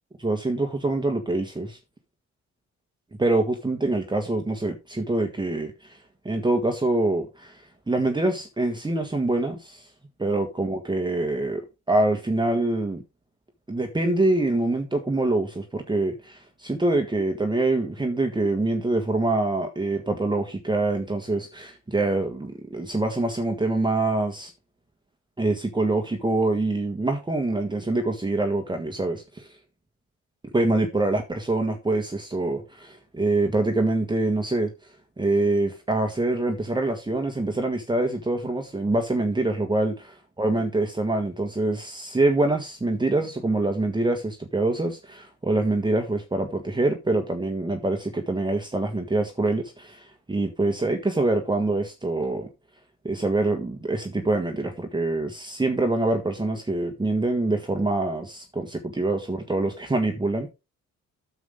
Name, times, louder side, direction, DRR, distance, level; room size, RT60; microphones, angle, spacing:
voice 1, 0.2-1.8 3.2-6.0 6.2-9.8 10.2-11.6 11.9-13.0 13.7-24.5 25.4-29.5 30.5-34.7 35.2-52.5 53.0-60.5, right 2 dB, 15° right, 1.6 m, -25 dB
9.4 x 7.3 x 3.7 m
cardioid pair, 90°, 30 cm